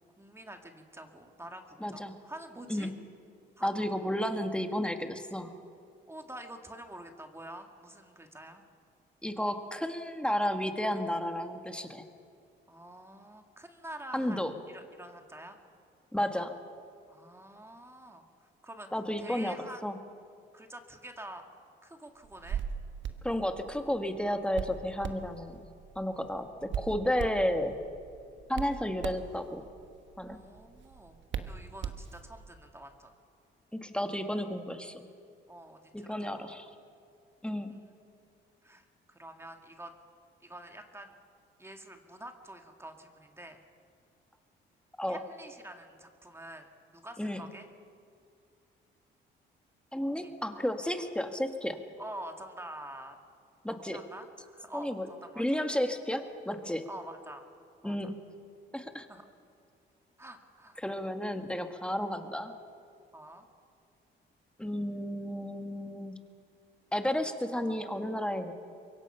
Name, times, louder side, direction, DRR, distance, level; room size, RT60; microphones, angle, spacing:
voice 1, 0.2-2.9 3.6-3.8 6.1-8.6 12.7-15.6 17.1-18.3 18.6-18.9 19.2-19.8 20.5-21.4 21.8-22.6 26.1-26.7 27.1-27.3 30.2-33.1 35.5-36.4 37.7-37.9 38.6-39.9 40.4-41.1 41.6-43.6 45.1-46.7 46.9-47.7 50.1-50.3 52.0-53.2 53.7-55.4 56.9-57.4 57.8-58.1 59.1-59.3 60.2-60.8 63.1-63.5, right 1 dB, 10° right, 4 dB, 2.2 m, -47 dB
voice 2, 1.8-2.1 2.7-2.9 3.6-5.5 9.2-12.0 14.1-14.5 16.1-16.6 18.9-20.0 23.2-25.6 26.0-27.7 28.5-29.6 30.2-30.4 33.7-35.1 35.9-36.7 37.4-37.7 45.0-45.2 47.2-47.4 49.9-51.8 53.6-54.0 54.7-55.1 55.4-56.9 57.8-58.2 58.7-59.1 60.8-62.5 64.6-66.2 66.9-68.5, left 1 dB, 5° left, 6 dB, 1.8 m, -32 dB
Hands, 22.2-32.5, right 7 dB, 65° right, 1.4 m, -41 dB
24.5 x 22.5 x 5.7 m, 2.3 s
cardioid pair, 90°, 20 cm